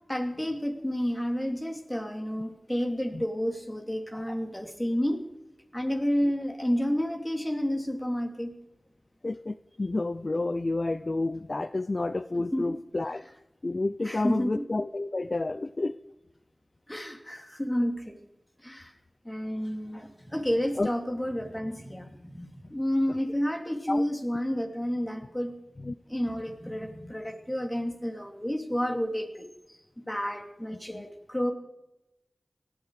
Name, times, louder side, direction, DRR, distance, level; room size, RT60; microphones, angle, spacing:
voice 1, 0.1-5.2 5.7-8.5 12.5-12.7 14.0-14.6 16.9-18.2 18.6-18.9 19.2-25.5 26.1-29.8 30.1-31.5, equal, 15° left, 5 dB, 2.7 m, -30 dB
voice 2, 9.2-13.2 13.6-16.0 16.9-17.0 20.8-20.9 23.1-23.2 23.9-24.0 25.8-25.9 30.7-31.1, left 2 dB, 50° left, 13 dB, 0.5 m, -30 dB
18.5 x 14.0 x 4.9 m, 0.91 s
wide cardioid pair, 55°, 0 cm